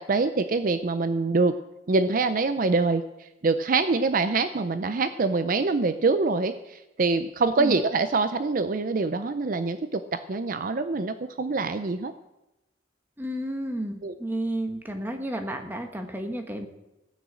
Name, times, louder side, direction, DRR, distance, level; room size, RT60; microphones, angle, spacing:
voice 1, 0.1-1.5 1.9-12.1 14.0-14.1, right 3 dB, 50° right, 11 dB, 0.5 m, -25 dB
voice 2, 13.2-16.7, right 1 dB, 10° right, 4 dB, 1.2 m, -32 dB
16.0 x 6.3 x 7.6 m, 0.96 s
head